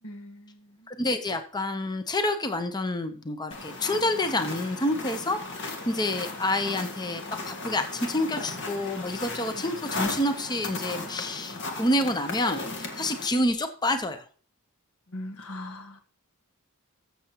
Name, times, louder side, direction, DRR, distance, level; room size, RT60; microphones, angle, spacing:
voice 1, 0.0-0.9 15.1-16.0, left 1 dB, 75° left, 6 dB, 1.4 m, -40 dB
voice 2, 0.9-14.2, left 1 dB, 20° left, 8 dB, 0.7 m, -28 dB
sound 1, 3.5-13.3, left 3 dB, 55° left, 1.8 m, -36 dB
14.5 x 6.8 x 2.9 m, 0.43 s
head